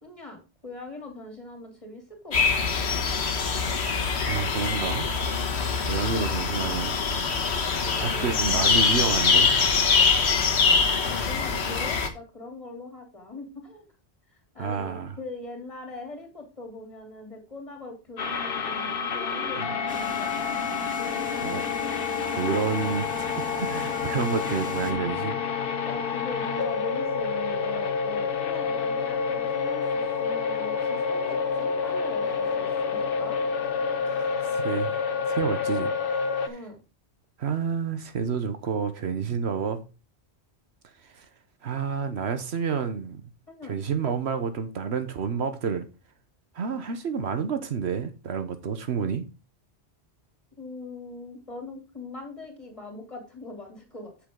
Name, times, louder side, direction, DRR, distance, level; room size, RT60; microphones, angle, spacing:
voice 1, 0.0-3.0 7.8-8.7 11.0-13.9 14.3-20.7 25.8-33.4 36.5-36.8 43.5-43.7 50.6-54.1, left 2 dB, 30° left, 3.1 m, -41 dB
sound 1, 2.3-12.1, left 5 dB, 75° left, 1.4 m, -24 dB
voice 2, 3.8-5.1 5.9-7.0 8.0-9.6 14.6-15.2 19.6-19.7 21.4-21.6 22.2-25.4 34.0-34.9 35.3-35.9 36.2-36.5 37.4-39.8 41.0-41.2 41.6-43.3 43.6-45.9 46.5-49.3, right 6 dB, 75° right, 1.2 m, -29 dB
sound 2, 18.2-36.5, left 5 dB, 55° left, 1.0 m, -28 dB
sound 3, 19.9-24.9, equal, 5° right, 1.6 m, -43 dB
8.3 x 6.7 x 3.7 m
omnidirectional pair, 1.1 m